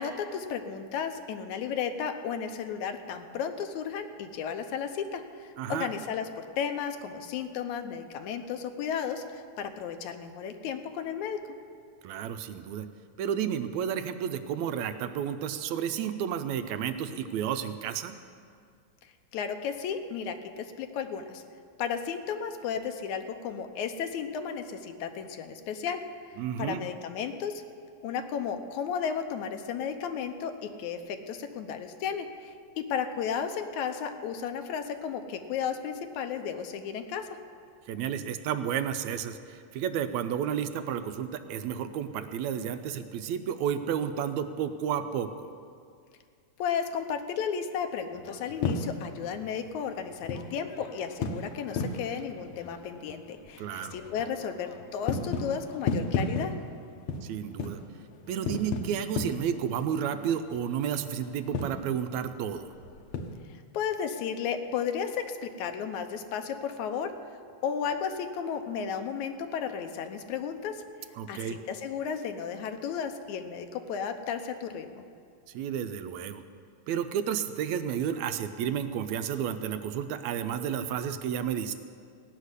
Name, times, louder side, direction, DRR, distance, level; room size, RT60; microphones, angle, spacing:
voice 1, 0.0-11.4 19.3-21.4 21.8-26.0 26.3-27.6 28.0-37.3 46.6-56.5 63.5-67.1 67.6-70.8 71.3-75.0, left 7 dB, 80° left, 7 dB, 2.2 m, -34 dB
voice 2, 5.6-5.9 12.0-12.9 13.2-18.2 26.4-26.8 37.9-45.5 53.6-54.0 57.2-57.8 58.3-62.7 71.2-71.6 75.5-76.4 76.9-81.7, right 8 dB, 80° right, 10 dB, 2.0 m, -31 dB
sound 1, 48.1-63.4, left 4 dB, 65° left, 1.5 m, -36 dB
16.0 x 6.6 x 9.7 m, 2.2 s
omnidirectional pair, 3.3 m